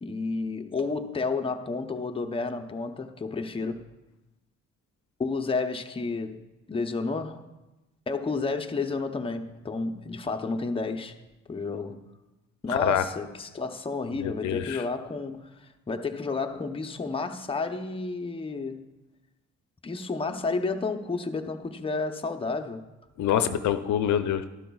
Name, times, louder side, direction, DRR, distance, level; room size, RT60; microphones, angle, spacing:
voice 1, 0.0-3.9 5.2-6.4 6.7-7.5 8.1-11.1 11.5-12.0 12.6-18.8 19.8-22.8, left 3 dB, 20° left, 0.7 m, -31 dB
voice 2, 12.7-13.1 14.1-14.8 23.2-24.5, left 9 dB, 70° left, 0.6 m, -26 dB
12.5 x 12.0 x 2.3 m
cardioid pair, 90°, 30 cm